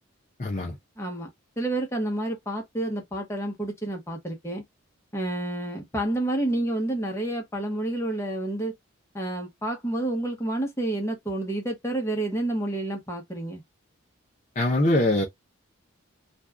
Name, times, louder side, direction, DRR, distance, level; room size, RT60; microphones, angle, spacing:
voice 1, 0.4-0.8 14.6-15.3, left 1 dB, 35° left, 0.6 m, -22 dB
voice 2, 1.0-1.3 1.6-4.6 5.1-8.7 9.1-13.6, right 1 dB, 15° left, 0.9 m, -29 dB
2.6 x 2.3 x 3.3 m
head